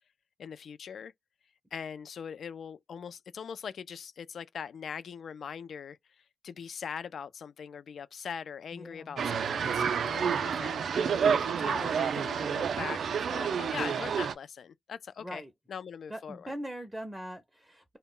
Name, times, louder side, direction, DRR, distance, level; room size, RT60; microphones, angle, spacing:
voice 1, 0.4-1.1 1.7-15.4 15.7-16.5, left 7 dB, 60° left, 0.3 m, -41 dB
voice 2, 8.7-9.2 15.2-15.5 16.1-18.0, equal, 5° right, 0.5 m, -41 dB
sound 1, 9.2-14.3, right 7 dB, 65° right, 0.3 m, -29 dB
2.1 x 2.0 x 3.7 m
cardioid pair, 120°, 0 cm